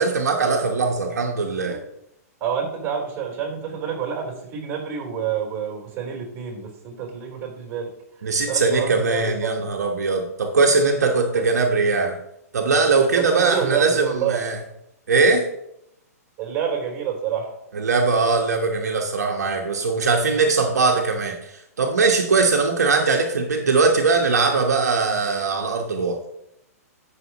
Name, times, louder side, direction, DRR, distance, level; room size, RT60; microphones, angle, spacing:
voice 1, 0.0-1.8 8.2-12.2 12.5-14.6 15.1-15.5 17.7-21.4 21.8-26.2, right 4 dB, 80° right, 2 dB, 1.2 m, -20 dB
voice 2, 2.4-7.9 8.5-9.6 11.3-11.4 13.1-14.4 16.4-17.5, right 7 dB, 25° right, 0 dB, 3.8 m, -28 dB
15.5 x 6.4 x 3.0 m, 0.80 s
hypercardioid pair, 130°, 9 cm